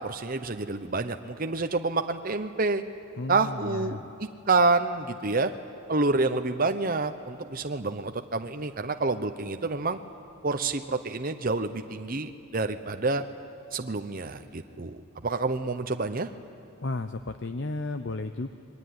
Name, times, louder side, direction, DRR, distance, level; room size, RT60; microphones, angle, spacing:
voice 1, 0.0-2.8 3.3-5.5 5.9-10.0 10.4-13.2 13.7-16.3, right 3 dB, 40° right, 7 dB, 0.8 m, -28 dB
voice 2, 3.2-4.0 16.8-18.5, left 2 dB, 55° left, 9 dB, 0.8 m, -33 dB
26.5 x 22.0 x 9.6 m, 2.6 s
head